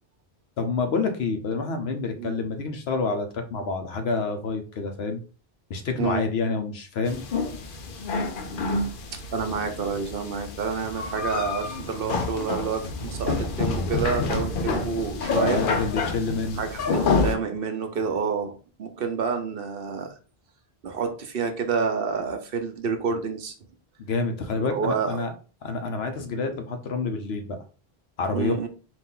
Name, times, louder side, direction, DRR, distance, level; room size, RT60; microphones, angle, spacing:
voice 1, 0.6-5.2 5.7-7.3 15.3-16.6 24.0-25.3 25.6-27.6 28.2-28.5, left 4 dB, 80° left, 7 dB, 1.0 m, -28 dB
sound 1, 7.0-17.3, left 4 dB, 60° left, 0.7 m, -28 dB
voice 2, 9.1-15.6 16.6-20.1 20.8-23.5 24.6-25.2 28.3-28.7, right 5 dB, 65° right, 7 dB, 0.9 m, -29 dB
4.1 x 2.6 x 3.7 m, 0.36 s
omnidirectional pair, 1.0 m